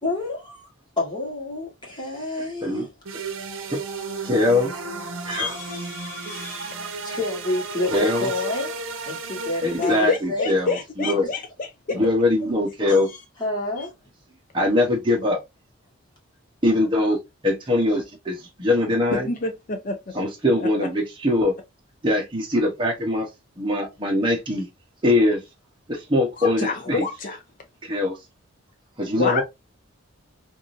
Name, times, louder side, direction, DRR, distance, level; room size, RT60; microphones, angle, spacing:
voice 1, 0.0-0.6 1.0-2.9 6.8-8.8 9.1-10.6 13.4-13.9, left 2 dB, 20° left, 1.4 m, -29 dB
sound 1, 3.0-10.2, right 3 dB, 65° right, 0.8 m, -33 dB
voice 2, 4.2-4.7 5.2-5.6 7.9-8.3 9.6-11.2 11.9-13.1 14.5-15.4 16.6-19.3 20.1-21.5 22.0-23.3 23.6-24.7 25.0-25.4 25.9-27.0 27.8-28.2 29.0-29.4, left 1 dB, 25° right, 0.9 m, -22 dB
voice 3, 5.3-6.7 9.8-11.7 12.9-13.0 19.1-20.1 20.6-20.9 26.4-27.4 29.2-29.4, left 3 dB, 40° left, 0.4 m, -28 dB
3.6 x 2.6 x 2.5 m
head